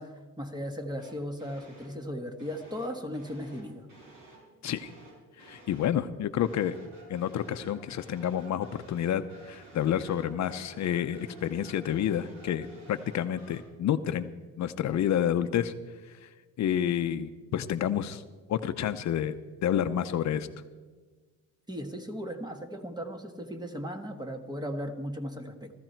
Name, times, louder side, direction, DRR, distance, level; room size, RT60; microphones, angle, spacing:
voice 1, 0.0-3.9 21.7-25.7, equal, 15° right, 6 dB, 1.5 m, -37 dB
sound 1, 1.0-2.0 2.4-6.0 6.4-13.6, right 1 dB, 80° right, 6.2 m, -53 dB
voice 2, 5.4-6.8 7.1-14.3 14.6-15.7 16.1-16.3 16.6-18.2 18.5-19.4 19.6-20.5, left 10 dB, 60° left, 10 dB, 0.7 m, -29 dB
17.0 x 14.0 x 4.5 m, 1.4 s
cardioid pair, 110°, 32 cm